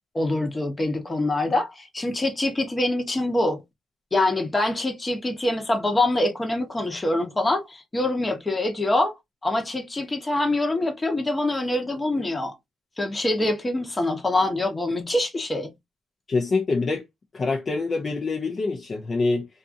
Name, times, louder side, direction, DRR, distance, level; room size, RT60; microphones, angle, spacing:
voice 1, 0.1-3.6 4.1-9.1 9.4-12.5 13.0-15.7, left 2 dB, 20° left, 0.9 m, -25 dB
voice 2, 16.3-17.0 17.3-19.5, left 3 dB, 40° left, 0.6 m, -25 dB
2.6 x 2.4 x 2.6 m
cardioid pair, 90°, 0 cm